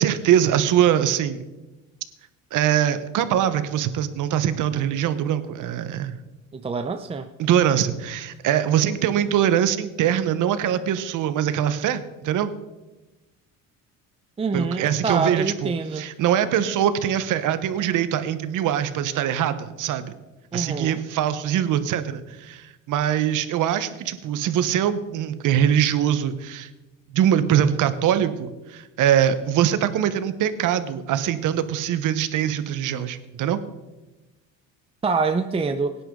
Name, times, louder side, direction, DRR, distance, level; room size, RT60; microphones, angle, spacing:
voice 1, 0.0-1.4 2.5-6.2 7.4-12.5 14.5-20.1 20.5-26.7 27.1-33.6, right 10 dB, 65° right, 12 dB, 1.1 m, -23 dB
voice 2, 6.5-7.3 14.4-16.1 20.5-21.0 35.0-36.0, right 4 dB, 15° right, 8 dB, 0.6 m, -25 dB
18.0 x 10.0 x 3.8 m, 1.1 s
cardioid pair, 110°, 34 cm